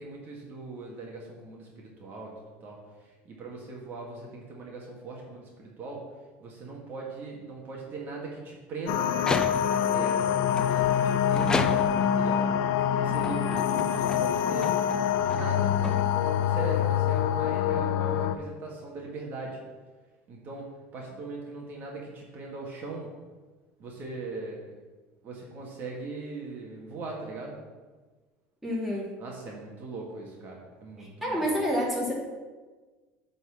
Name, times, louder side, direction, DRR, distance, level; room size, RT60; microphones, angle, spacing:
voice 1, 0.0-2.3 2.6-6.1 6.4-9.2 9.7-10.3 10.7-12.5 12.9-14.8 15.3-15.7 16.2-19.6 20.3-23.1 23.8-24.7 25.2-27.6 29.2-31.5, right 3 dB, 45° right, -2 dB, 1.8 m, -39 dB
sound 1, 8.9-18.4, left 9 dB, 75° left, 0.5 m, -25 dB
sound 2, 9.1-9.9 10.5-12.2 12.9-16.4, left 3 dB, 15° left, 0.5 m, -34 dB
voice 2, 28.6-29.1 31.0-32.1, equal, 5° right, -5 dB, 2.6 m, -28 dB
9.1 x 4.3 x 7.3 m, 1.3 s
supercardioid pair, 125°, 5 cm